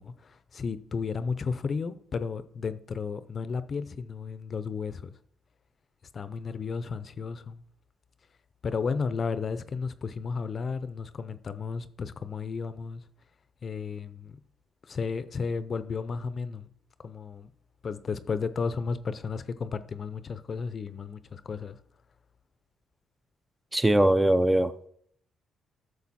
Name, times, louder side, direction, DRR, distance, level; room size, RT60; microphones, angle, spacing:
voice 1, 0.0-5.1 6.1-7.6 8.6-13.0 13.6-14.4 14.8-16.7 17.0-17.5 17.8-21.8, left 5 dB, 45° left, 0.7 m, -33 dB
voice 2, 23.7-24.9, right 1 dB, 10° right, 0.6 m, -22 dB
12.0 x 6.6 x 4.2 m
cardioid pair, 90°, 0 cm